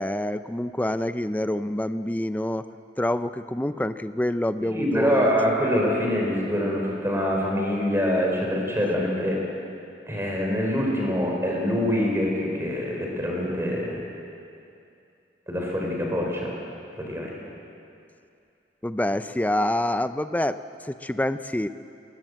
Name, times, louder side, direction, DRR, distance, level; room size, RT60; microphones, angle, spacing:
voice 1, 0.0-2.7 3.0-5.3 18.8-21.7, left 1 dB, 10° left, 11 dB, 0.4 m, -27 dB
voice 2, 4.6-9.4 10.1-13.9 15.5-16.5 16.9-17.4, equal, 15° right, -1 dB, 4.3 m, -25 dB
21.0 x 18.0 x 7.9 m, 2.6 s
head